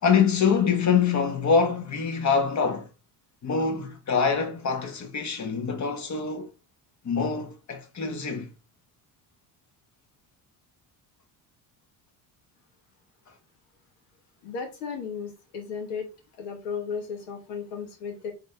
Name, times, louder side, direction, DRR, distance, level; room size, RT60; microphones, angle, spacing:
voice 1, 0.0-2.9 3.4-6.5 7.0-8.5, left 6 dB, 40° left, 1.3 m, -25 dB
voice 2, 14.4-16.1 16.4-18.3, left 6 dB, 90° left, 1.6 m, -35 dB
4.3 x 3.3 x 3.3 m
supercardioid pair, 75°, 43 cm